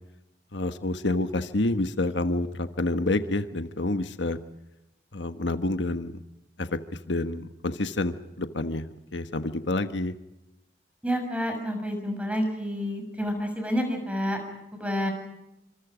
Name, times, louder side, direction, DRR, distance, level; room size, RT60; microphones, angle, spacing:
voice 1, 0.5-4.4 5.1-6.2 6.6-6.8 7.1-10.1, left 2 dB, 75° left, 9 dB, 1.3 m, -28 dB
voice 2, 11.0-14.4 14.7-15.1, equal, 5° right, 5 dB, 6.5 m, -29 dB
28.5 x 26.0 x 5.1 m, 0.89 s
head